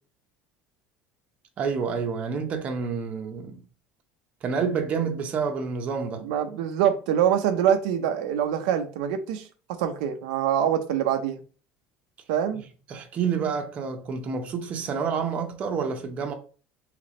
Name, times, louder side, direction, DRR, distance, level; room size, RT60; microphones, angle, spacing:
voice 1, 1.6-3.6 4.4-6.2 12.9-16.3, right 6 dB, 35° right, 0.7 m, -28 dB
voice 2, 6.2-11.4 12.3-12.6, right 9 dB, 85° right, 0.5 m, -25 dB
3.3 x 3.2 x 3.7 m
cardioid pair, 150°, 4 cm